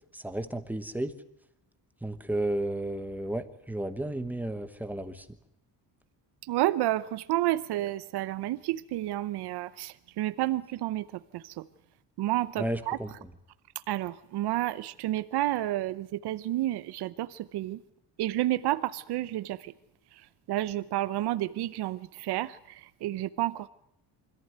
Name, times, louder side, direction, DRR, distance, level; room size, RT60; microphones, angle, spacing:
voice 1, 0.1-1.1 2.0-5.3 12.6-13.1, right 1 dB, 5° right, 9 dB, 1.1 m, -33 dB
voice 2, 6.4-11.7 12.2-13.0 13.9-17.8 18.2-19.7 20.1-20.2 20.5-23.7, right 15 dB, 80° right, 14 dB, 0.8 m, -30 dB
25.0 x 14.5 x 9.5 m, 0.80 s
cardioid pair, 160°, 39 cm